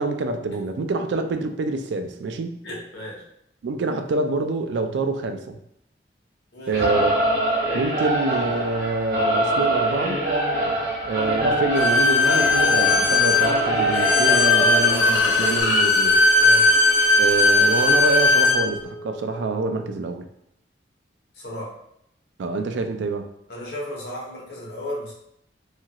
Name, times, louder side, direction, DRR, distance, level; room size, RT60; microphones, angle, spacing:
voice 1, 0.0-2.6 3.6-5.6 6.7-7.3 7.7-10.2 11.0-16.2 17.2-20.2 22.4-23.3, right 3 dB, 75° right, 7 dB, 0.3 m, -26 dB
voice 2, 2.6-3.2 6.5-6.8 16.4-16.7 21.3-21.7 23.5-25.1, left 1 dB, 60° left, -3 dB, 0.9 m, -34 dB
Singing / Musical instrument, 6.7-15.6, right 1 dB, 50° right, 0.9 m, -24 dB
Bowed string instrument, 11.7-18.6, left 3 dB, 90° left, 0.6 m, -18 dB
Wind instrument woodwind instrument, 12.9-20.0, right 2 dB, ahead, 0.4 m, -38 dB
2.8 x 2.4 x 2.8 m, 0.75 s
head